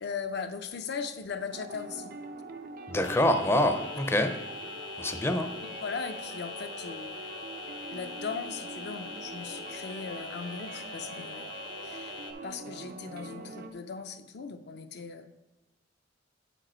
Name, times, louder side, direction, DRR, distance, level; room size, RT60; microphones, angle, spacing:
voice 1, 0.0-2.2 5.8-7.2 7.9-11.6 11.8-12.2 12.4-15.3, left 5 dB, 65° left, 8 dB, 0.5 m, -38 dB
sound 1, 1.5-13.7, right 2 dB, 55° right, 0.5 m, -43 dB
voice 2, 2.9-4.3 5.0-5.5, left 1 dB, 15° left, 7 dB, 0.5 m, -25 dB
sound 2, 3.0-12.3, left 4 dB, 85° left, 0.9 m, -43 dB
8.1 x 5.1 x 4.3 m, 1.0 s
head